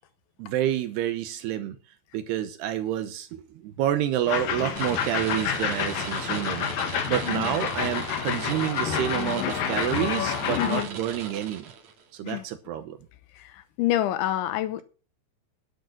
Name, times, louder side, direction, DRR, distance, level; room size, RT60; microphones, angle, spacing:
voice 1, 0.4-1.8 2.1-11.7 12.1-13.0, right 11 dB, 75° right, 2.6 m, -29 dB
sound 1, 4.3-10.8, left 8 dB, 65° left, 2.4 m, -29 dB
sound 2, 4.8-12.0, right 6 dB, 55° right, 2.2 m, -38 dB
voice 2, 7.2-7.5 10.6-10.9 12.2-12.4 13.4-13.5 13.8-14.8, left 13 dB, 80° left, 3.3 m, -27 dB
10.5 x 9.1 x 6.0 m
omnidirectional pair, 5.4 m